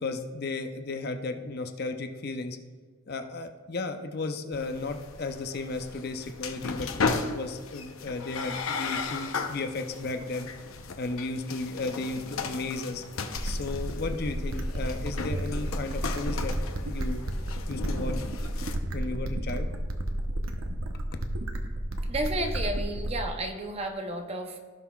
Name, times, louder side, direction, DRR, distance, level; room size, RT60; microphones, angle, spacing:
voice 1, 0.0-2.6 3.1-10.5 11.0-13.0 13.4-16.5 16.8-17.2 17.7-18.3 18.9-19.7 20.3-20.4 20.9-21.0, left 3 dB, 50° left, 7 dB, 0.6 m, -34 dB
sound 1, 4.5-18.7, left 4 dB, 90° left, 0.7 m, -36 dB
sound 2, 13.4-23.4, right 1 dB, 85° right, 0.8 m, -32 dB
voice 2, 22.1-24.6, right 1 dB, 30° right, 5 dB, 0.7 m, -32 dB
16.5 x 5.8 x 2.3 m, 1.5 s
head